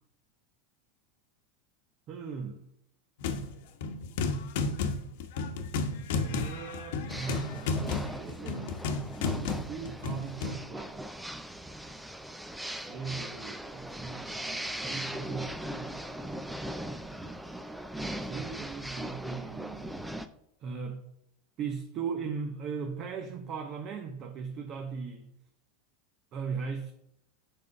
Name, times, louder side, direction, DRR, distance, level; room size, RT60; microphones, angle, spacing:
voice 1, 2.1-2.6 6.2-8.8 9.7-11.1 12.8-16.0 18.2-20.1 20.6-21.0 21.6-25.3 26.3-26.9, right 5 dB, 35° right, 0.8 m, -38 dB
sound 1, 3.2-3.5 3.8-10.6, left 4 dB, 70° left, 1.1 m, -32 dB
sound 2, 7.1-20.3, right 1 dB, 5° right, 0.4 m, -39 dB
7.5 x 5.4 x 5.4 m
supercardioid pair, 155°, 0 cm